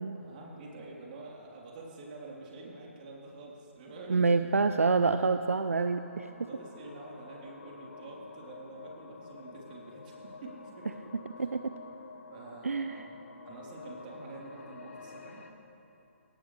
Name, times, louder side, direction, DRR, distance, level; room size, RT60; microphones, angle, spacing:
voice 1, 0.1-4.3 6.5-11.1 11.4-11.5 12.3-15.4, right 2 dB, 40° right, -3 dB, 3.7 m, -47 dB
voice 2, 4.1-6.3 11.4-11.7 12.6-13.0, right 4 dB, 75° right, 9 dB, 0.5 m, -27 dB
sound 1, 4.8-15.5, left 4 dB, 65° left, 1.6 m, -50 dB
21.0 x 18.0 x 3.4 m, 2.9 s
figure-of-eight pair, 135°, 8 cm